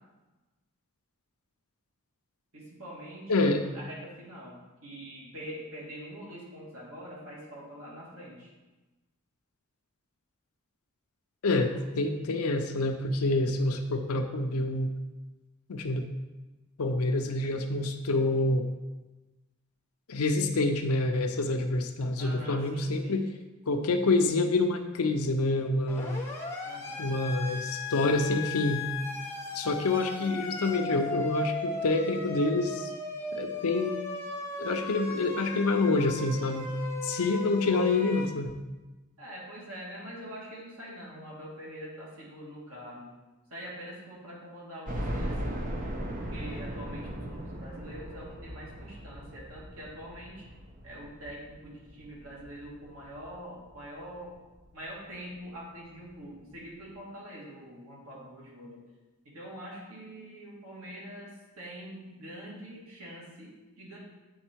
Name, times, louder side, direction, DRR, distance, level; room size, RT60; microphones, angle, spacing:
voice 1, 2.5-3.5 3.7-8.5 11.6-11.8 22.2-23.2 26.6-27.1 30.8-31.3 37.9-38.2 39.2-43.1 43.5-45.7 46.1-50.5 50.8-54.3 54.7-58.8 59.2-64.0, equal, 75° right, -4 dB, 2.0 m, -44 dB
voice 2, 3.3-3.6 11.4-14.9 15.7-16.1 16.8-18.7 20.1-23.3 23.7-26.2 27.0-28.8 29.5-32.9 33.3-33.9 34.6-36.7 37.0-38.5, left 2 dB, 80° left, 5 dB, 0.5 m, -27 dB
Siren, 25.9-38.3, left 2 dB, 10° left, 0.8 m, -37 dB
sound 1, 44.9-53.8 54.2-54.3 54.7-54.8 56.0-56.1 56.4-56.5, equal, 35° right, 0.8 m, -38 dB
7.7 x 4.4 x 4.5 m, 1.1 s
head